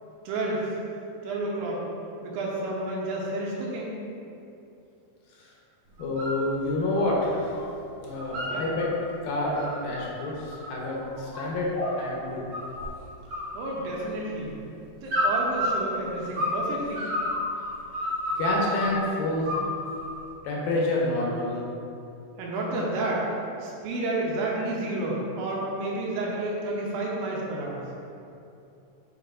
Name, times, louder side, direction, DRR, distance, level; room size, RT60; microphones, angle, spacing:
voice 1, 0.3-0.8 1.2-1.9 2.2-3.9 8.5-8.6 13.5-14.6 15.0-17.1 22.4-23.3 23.6-27.8, right 2 dB, 75° right, -3 dB, 2.4 m, -30 dB
voice 2, 6.0-7.6 8.0-8.9 9.2-11.7 12.0-12.5 18.4-19.5 20.4-21.6, left 2 dB, 75° left, -4 dB, 2.5 m, -28 dB
sound 1, 6.0-6.4 6.7-7.7 7.9-8.9 9.3-12.1 12.5-13.0 13.3-14.3 15.1-16.6 16.9-19.0 19.4-20.2, left 1 dB, 60° right, 1.2 m, -30 dB
sound 2, 9.3-9.6 11.7-12.0 12.7-12.9, left 1 dB, 55° left, 1.6 m, -33 dB
6.9 x 5.5 x 2.5 m, 2.7 s
omnidirectional pair, 4.5 m